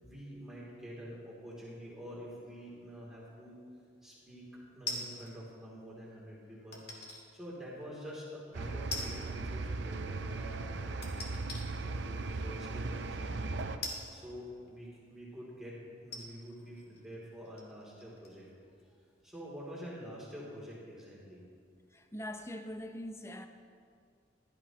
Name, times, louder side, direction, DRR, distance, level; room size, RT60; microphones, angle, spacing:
voice 1, 0.0-3.6 4.0-6.8 7.3-11.3 11.8-13.7 14.1-18.5 18.8-18.9 19.2-21.4, equal, ahead, 2.9 m, -47 dB
sound 1, 4.9-5.4 6.7-7.2 7.8-7.9 8.9-9.4 9.6-9.7 11.0-11.7 12.5-12.6 13.8-14.9 15.6-15.7 16.0-18.5 18.8-18.9, left 2 dB, 55° left, 2.0 m, -42 dB
sound 2, 8.5-13.8, right 3 dB, 65° right, 0.6 m, -38 dB
voice 2, 21.9-23.5, left 1 dB, 15° left, 0.6 m, -42 dB
16.5 x 12.0 x 3.0 m
head